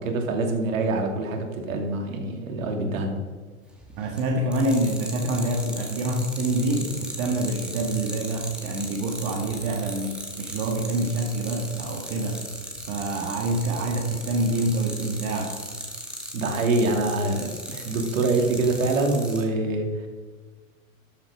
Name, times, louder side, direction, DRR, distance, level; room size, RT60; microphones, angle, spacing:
voice 1, 0.0-3.2 16.3-20.1, right 2 dB, 65° right, 3 dB, 2.6 m, -25 dB
sound 1, 3.8-4.2 4.5-19.4, right 1 dB, ahead, 2.0 m, -37 dB
voice 2, 4.0-12.4 12.9-15.5, right 1 dB, 45° right, 1 dB, 1.8 m, -26 dB
13.0 x 7.5 x 4.9 m, 1.4 s
hypercardioid pair, 115°, 43 cm